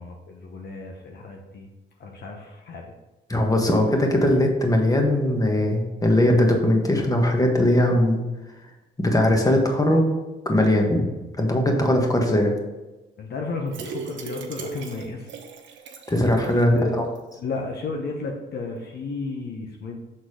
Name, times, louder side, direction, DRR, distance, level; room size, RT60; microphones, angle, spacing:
voice 1, 0.0-1.7 2.0-2.8 13.2-15.3 15.7-15.8 16.4-17.0 17.4-20.0, left 3 dB, 55° left, 1 dB, 0.9 m, -33 dB
voice 2, 3.3-8.2 9.0-10.1 10.4-11.1 11.4-12.5 16.1-16.8, left 1 dB, 15° left, 2 dB, 1.4 m, -20 dB
sound 1, 13.7-16.8 17.1-17.2 17.6-17.7, right 4 dB, 70° right, 1.1 m, -38 dB
6.5 x 3.9 x 5.0 m, 1.1 s
cardioid pair, 90°, 20 cm